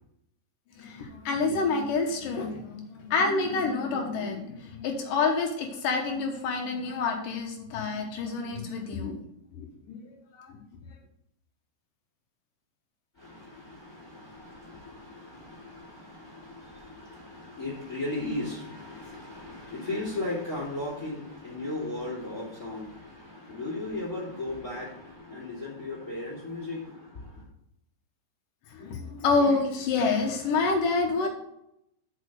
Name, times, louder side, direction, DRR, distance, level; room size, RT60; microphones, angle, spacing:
voice 1, 0.8-9.2 9.5-10.6 28.7-31.3, left 4 dB, 70° left, 2.1 m, -28 dB
voice 2, 13.2-27.4, left 2 dB, 25° left, 2.3 m, -36 dB
6.6 x 5.9 x 6.5 m
omnidirectional pair, 5.4 m